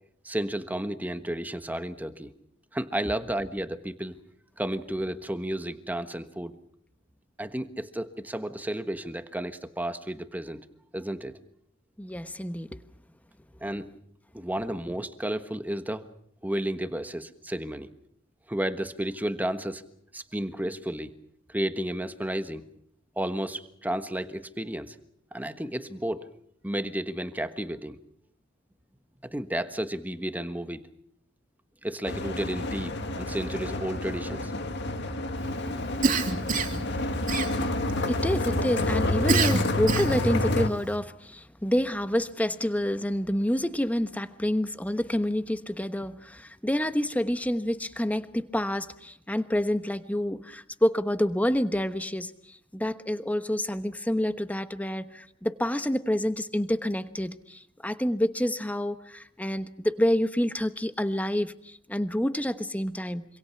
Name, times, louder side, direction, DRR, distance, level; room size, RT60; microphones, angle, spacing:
voice 1, 0.2-2.3 2.7-4.2 4.6-6.6 7.4-10.6 10.9-11.4 13.6-13.9 14.3-16.1 16.4-17.9 18.5-19.8 20.1-21.1 21.5-22.6 23.2-25.0 25.3-26.3 26.6-28.0 29.2-30.8 31.8-34.5, right 1 dB, 10° right, 9 dB, 1.3 m, -32 dB
voice 2, 12.0-12.8 38.1-52.3 52.7-63.3, left 1 dB, 10° left, 11 dB, 1.1 m, -28 dB
sound 1, 32.1-40.7, left 2 dB, 60° left, 2.1 m, -29 dB
Cough, 36.0-36.8 37.3-37.9 39.3-40.3, right 4 dB, 45° right, 2.9 m, -26 dB
26.5 x 26.0 x 5.9 m, 0.69 s
head